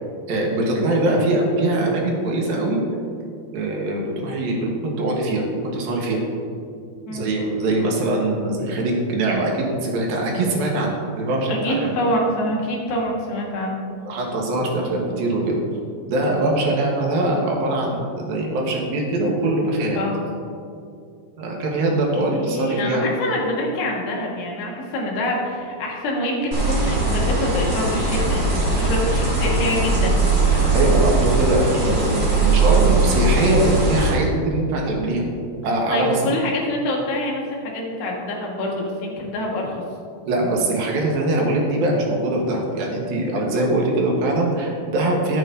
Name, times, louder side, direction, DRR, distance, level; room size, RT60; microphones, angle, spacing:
voice 1, 0.3-2.8 3.5-5.5 5.7-6.2 7.1-11.9 14.1-15.6 16.0-20.0 21.4-23.0 30.5-35.3 35.6-36.3 40.3-45.4, right 2 dB, 75° right, -1 dB, 3.1 m, -22 dB
voice 2, 11.5-13.8 20.0-20.2 22.3-30.2 35.9-39.8, left 1 dB, 75° left, -1 dB, 3.4 m, -25 dB
sound 1, 26.5-34.1, right 3 dB, 30° right, 2.2 m, -19 dB
13.0 x 9.0 x 2.8 m, 2.4 s
omnidirectional pair, 4.4 m